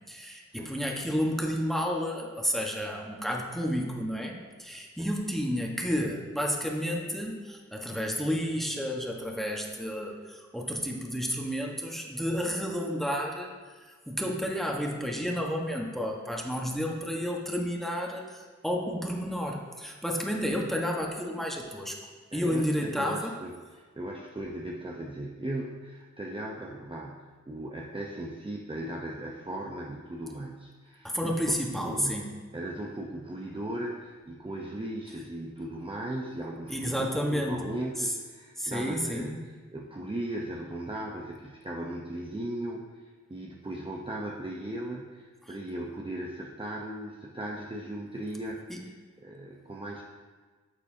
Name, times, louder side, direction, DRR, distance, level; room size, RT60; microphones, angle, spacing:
voice 1, 0.1-22.0 22.3-23.4 31.0-32.3 36.7-37.7 38.0-38.1 38.6-39.4 45.4-45.5 48.7-48.9, equal, ahead, 0 dB, 1.3 m, -31 dB
voice 2, 22.3-31.3 31.8-39.4 39.7-48.9 49.2-50.0, right 1 dB, 15° right, -1 dB, 0.8 m, -37 dB
9.6 x 6.8 x 2.8 m, 1.4 s
cardioid pair, 55°, 30 cm